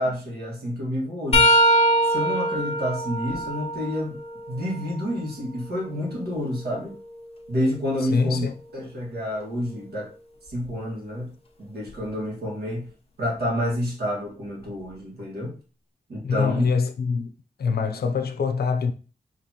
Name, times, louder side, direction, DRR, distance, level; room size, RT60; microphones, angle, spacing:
voice 1, 0.0-1.6 2.1-4.2 4.5-7.0 7.5-8.5 8.7-10.1 10.5-11.3 11.6-12.9 13.2-15.6 16.1-16.6, equal, 80° right, 1.8 m, -29 dB
sound 1, 1.3-5.1 5.6-7.6 10.5-10.7 11.9-12.1 13.4-13.5, equal, 40° left, 0.9 m, -24 dB
voice 2, 8.1-8.5 16.2-17.3 17.6-18.9, left 5 dB, 75° left, 0.6 m, -24 dB
5.1 x 3.1 x 2.9 m
wide cardioid pair, 135°, 16 cm